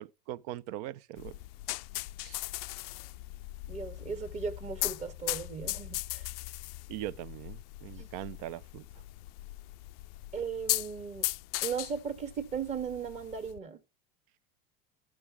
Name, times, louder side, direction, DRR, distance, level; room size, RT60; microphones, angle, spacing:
voice 1, 0.0-1.4 2.2-2.4 6.9-8.8, right 14 dB, 65° right, 0.6 m, -41 dB
sound 1, 1.2-13.6, left 20 dB, 65° left, 0.4 m, -38 dB
voice 2, 3.7-6.3 8.0-8.1 10.3-11.3 11.6-13.8, right 6 dB, 35° right, 1.5 m, -37 dB
13.5 x 6.0 x 3.5 m
supercardioid pair, 125°, 20 cm